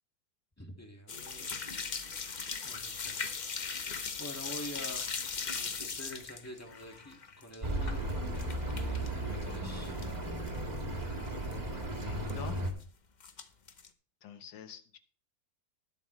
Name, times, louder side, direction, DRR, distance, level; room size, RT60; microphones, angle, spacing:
voice 1, 0.6-1.5 2.6-3.1 4.2-8.1 8.4-9.9, equal, 10° left, 2 dB, 1.8 m, -47 dB
sound 1, 1.1-9.1 9.4-10.2 10.5-10.6 11.0-11.1 11.3-11.5 12.3-12.8 13.2-13.9, left 5 dB, 50° left, 0.5 m, -39 dB
Accelerating revving vroom, 7.6-12.7, right 1 dB, 25° right, 1.9 m, -35 dB
voice 2, 12.0-12.6 14.2-15.0, left 7 dB, 80° left, 9 dB, 1.8 m, -46 dB
20.0 x 7.3 x 3.1 m, 0.42 s
omnidirectional pair, 2.0 m